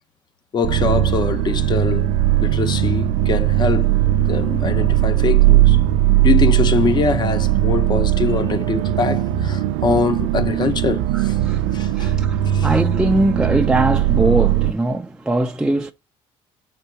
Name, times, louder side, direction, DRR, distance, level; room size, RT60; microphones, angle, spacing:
voice 1, 0.5-2.1 2.4-3.9 4.3-5.8 6.2-11.3 11.7-12.1 12.5-12.7, left 5 dB, 40° left, 1.1 m, -23 dB
sound 1, 0.6-14.7, right 13 dB, 90° right, 0.5 m, -18 dB
voice 2, 11.1-15.9, right 1 dB, 5° right, 0.6 m, -21 dB
6.7 x 3.8 x 4.7 m
cardioid pair, 100°, 12 cm